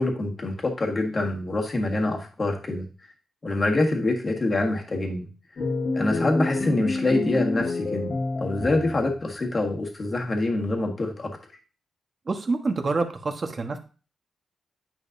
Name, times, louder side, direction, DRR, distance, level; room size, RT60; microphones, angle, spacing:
voice 1, 0.0-2.9 3.4-5.3 5.9-11.4, left 2 dB, 35° left, 2 dB, 1.5 m, -25 dB
sound 1, 5.6-9.3, left 3 dB, 50° left, 1.4 m, -28 dB
voice 2, 12.2-13.8, right 3 dB, 40° right, 5 dB, 1.2 m, -27 dB
9.4 x 5.1 x 2.6 m, 0.35 s
cardioid pair, 100°, 0 cm